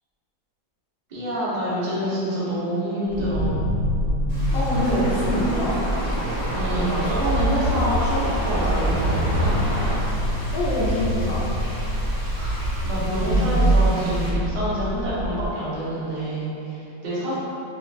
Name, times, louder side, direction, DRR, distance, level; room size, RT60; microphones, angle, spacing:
voice 1, 1.1-3.7 6.5-9.6 12.3-17.4, right 1 dB, 80° right, -10 dB, 0.4 m, -27 dB
sound 1, 3.1-15.5, right 1 dB, 35° left, 1.1 m, -24 dB
Frying (food), 4.3-14.3, equal, 15° left, 0.7 m, -39 dB
voice 2, 4.5-5.8 10.5-11.5, left 1 dB, 75° left, -6 dB, 0.8 m, -25 dB
Truck, 4.7-10.0, equal, 15° right, 0.8 m, -31 dB
3.2 x 3.2 x 2.3 m, 2.9 s
omnidirectional pair, 2.1 m